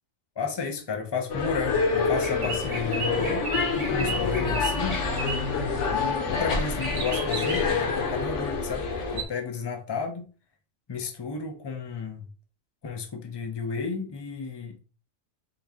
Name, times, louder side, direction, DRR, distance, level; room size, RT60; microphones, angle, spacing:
voice 1, 0.4-5.0 5.9-8.9 9.1-10.2 10.9-12.2 12.8-14.8, left 5 dB, 35° left, 0.4 m, -32 dB
sound 1, 1.3-9.2, left 4 dB, 65° left, 1.1 m, -27 dB
sound 2, 1.9-9.2, right 3 dB, 40° right, 0.7 m, -36 dB
3.8 x 2.6 x 3.5 m
omnidirectional pair, 1.4 m